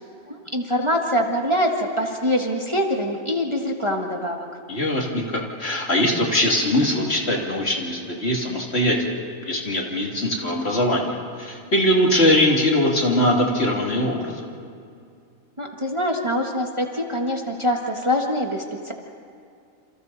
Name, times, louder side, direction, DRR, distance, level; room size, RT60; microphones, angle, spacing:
voice 1, 0.3-4.5 15.6-18.9, equal, 20° right, 1 dB, 1.6 m, -24 dB
voice 2, 4.7-9.1 9.4-14.5, left 1 dB, 50° left, -1 dB, 3.1 m, -21 dB
28.5 x 28.0 x 4.1 m, 2.4 s
omnidirectional pair, 1.4 m